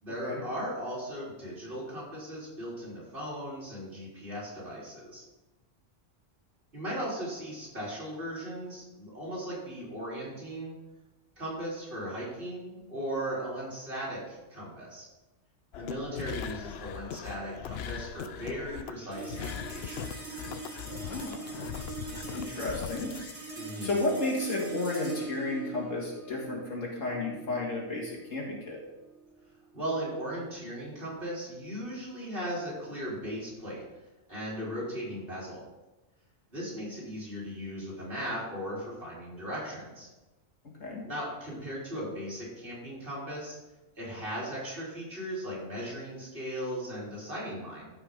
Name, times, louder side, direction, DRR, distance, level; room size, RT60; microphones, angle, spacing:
voice 1, 0.0-5.2 6.7-10.7 11.4-15.1 15.8-20.0 23.6-24.0 29.7-33.8 34.3-35.6 36.5-40.1 41.0-43.5 44.0-47.9, equal, 45° right, -7 dB, 3.9 m, -37 dB
sound 1, 15.7-23.3, left 8 dB, 65° left, 0.7 m, -40 dB
sound 2, 19.1-29.7, right 3 dB, 25° right, 2.0 m, -42 dB
voice 2, 21.0-21.4 22.3-23.1 23.8-28.8 40.8-41.0, left 2 dB, 90° left, -2 dB, 2.6 m, -32 dB
14.0 x 5.8 x 3.7 m, 1.1 s
omnidirectional pair, 1.3 m